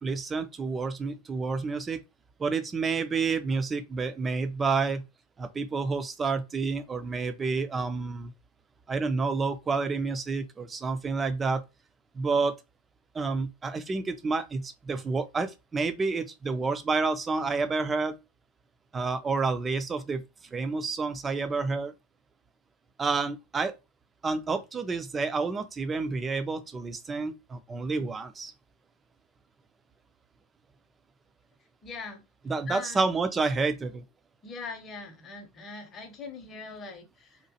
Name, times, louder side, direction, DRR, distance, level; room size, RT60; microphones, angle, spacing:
voice 1, 0.0-2.0 2.4-5.0 5.4-8.3 8.9-11.6 12.1-12.5 13.1-18.2 18.9-20.2 20.5-21.9 23.0-23.7 24.2-28.5 32.5-34.0, right 4 dB, 15° right, 0.4 m, -29 dB
voice 2, 31.8-32.2 32.7-33.0 34.4-37.4, left 4 dB, 25° left, 0.7 m, -41 dB
2.8 x 2.3 x 2.8 m
figure-of-eight pair, 90°, 0 cm